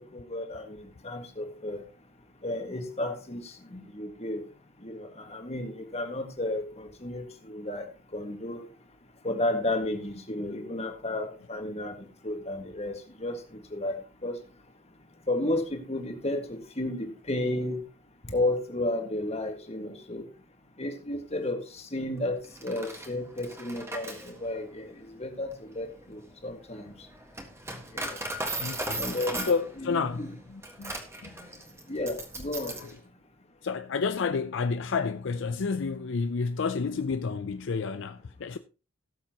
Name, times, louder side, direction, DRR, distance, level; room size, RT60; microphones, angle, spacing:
voice 1, 0.1-1.8 2.4-4.4 4.8-7.9 8.1-8.7 9.2-11.9 12.2-14.4 15.3-17.8 18.2-20.3 20.8-26.9 27.9-28.2 29.0-29.5 29.8-30.3 31.9-32.8, left 1 dB, 30° left, 1.8 m, -33 dB
Coin (dropping), 22.4-32.9, right 1 dB, 15° right, 1.6 m, -38 dB
voice 2, 28.6-29.1 29.4-30.9 31.2-31.6 32.8-32.9 33.6-38.6, left 5 dB, 60° left, 0.5 m, -30 dB
17.5 x 7.2 x 2.9 m
head